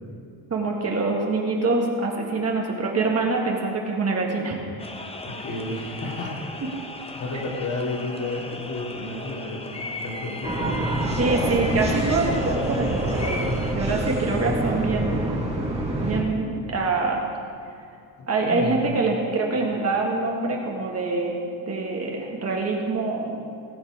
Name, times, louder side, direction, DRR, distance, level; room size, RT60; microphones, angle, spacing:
voice 1, 0.5-4.6 11.2-15.2 16.0-17.2 18.3-21.4 21.7-23.4, right 3 dB, 35° right, -1 dB, 1.8 m, -25 dB
sound 1, 4.8-13.7, left 2 dB, 15° left, 0.7 m, -37 dB
voice 2, 5.2-6.5 7.1-10.8 18.2-18.8, left 2 dB, 40° left, -2 dB, 2.6 m, -32 dB
sound 2, 10.4-16.2, right 1 dB, 15° right, 1.8 m, -26 dB
18.5 x 7.3 x 5.0 m, 2.6 s
cardioid pair, 145°, 44 cm